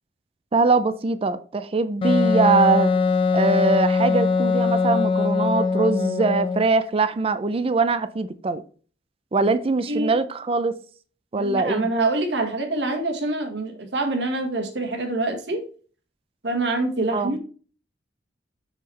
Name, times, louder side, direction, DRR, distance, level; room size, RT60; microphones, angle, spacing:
voice 1, 0.5-2.9 3.3-8.6 9.3-10.7 11.3-11.9 17.1-17.4, right 3 dB, 30° right, 0.4 m, -22 dB
Wind instrument woodwind instrument, 2.0-6.7, left 4 dB, 30° left, 0.5 m, -21 dB
voice 2, 11.3-15.6 16.4-17.4, right 2 dB, 70° right, 1.5 m, -25 dB
5.9 x 5.6 x 3.2 m
head